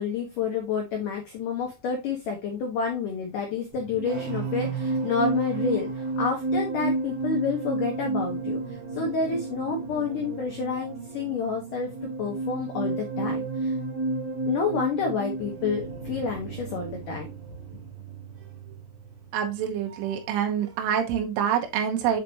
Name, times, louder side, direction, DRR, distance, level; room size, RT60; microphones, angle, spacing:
voice 1, 0.0-8.6 8.9-13.7 14.5-17.3, left 5 dB, 90° left, 1.8 m, -29 dB
sound 1, 3.7-20.4 20.6-20.9, right 3 dB, 60° right, 3.1 m, -32 dB
voice 2, 19.3-22.2, right 8 dB, 80° right, 3.6 m, -26 dB
7.4 x 5.1 x 2.9 m
omnidirectional pair, 5.7 m